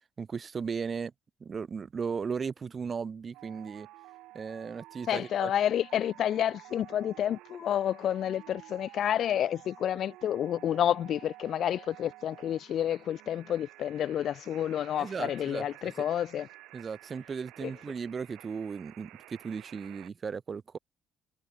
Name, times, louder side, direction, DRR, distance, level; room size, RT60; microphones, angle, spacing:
voice 1, 0.2-1.1 1.4-3.9 4.3-5.5 15.0-16.1 16.7-20.8, right 5 dB, 35° right, 2.2 m, -36 dB
sound 1, 3.3-20.1, right 17 dB, 85° right, 3.6 m, -52 dB
voice 2, 5.1-16.5 17.6-17.7, left 10 dB, 60° left, 1.2 m, -29 dB
cardioid pair, 100°, 0 cm